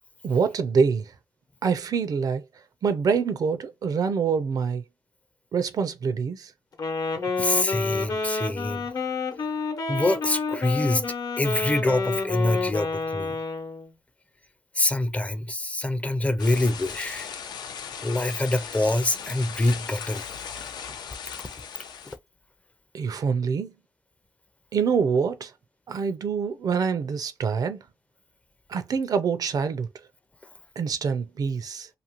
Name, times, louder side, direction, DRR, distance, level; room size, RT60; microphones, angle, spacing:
voice 1, 0.2-1.1 1.6-2.4 2.8-4.8 5.5-6.5 22.9-23.7 24.7-25.5 25.9-27.8 28.7-29.9 30.8-31.9, right 6 dB, 60° right, 0.4 m, -25 dB
Wind instrument woodwind instrument, 6.7-13.9, left 4 dB, 60° left, 0.8 m, -29 dB
voice 2, 7.4-8.9 9.9-11.0 11.4-13.4 14.8-17.3 18.0-20.2, left 1 dB, 20° left, 0.4 m, -25 dB
sound 1, 16.4-22.2, left 7 dB, 85° left, 0.5 m, -38 dB
2.7 x 2.4 x 2.9 m
cardioid pair, 95°, 7 cm